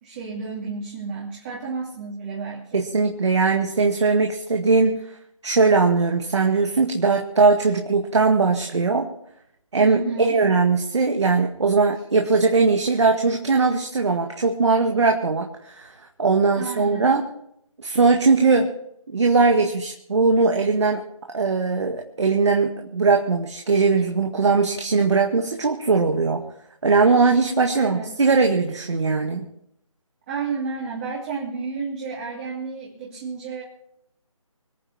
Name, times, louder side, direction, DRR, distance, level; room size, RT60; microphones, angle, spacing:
voice 1, 0.0-2.8 9.8-10.4 16.5-17.1 27.7-28.1 30.3-33.6, right 4 dB, 20° right, -5 dB, 2.8 m, -31 dB
voice 2, 2.7-5.0 5.4-9.1 9.7-15.9 16.2-17.3 17.8-18.7 19.1-21.0 21.3-26.4 26.8-29.4, right 4 dB, 55° right, 3 dB, 1.8 m, -20 dB
26.0 x 9.3 x 4.2 m, 0.76 s
figure-of-eight pair, 155°, 18 cm